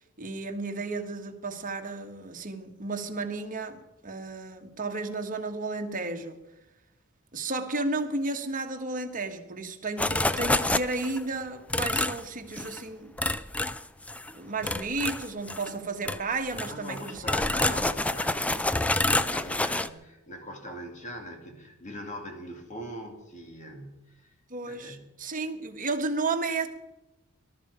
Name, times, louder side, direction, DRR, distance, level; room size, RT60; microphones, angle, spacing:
voice 1, 0.2-6.4 7.3-13.1 14.3-17.2 17.7-17.9 24.5-26.7, right 3 dB, 40° right, 1.4 m, -33 dB
sound 1, 10.0-11.2 11.7-12.2 12.5-12.8 13.2-14.3 14.6-15.7 16.1-16.2 16.5-19.9, left 2 dB, 5° left, 0.4 m, -28 dB
voice 2, 16.5-24.3 24.6-25.2, equal, 35° left, 2.6 m, -42 dB
18.5 x 12.5 x 5.0 m
head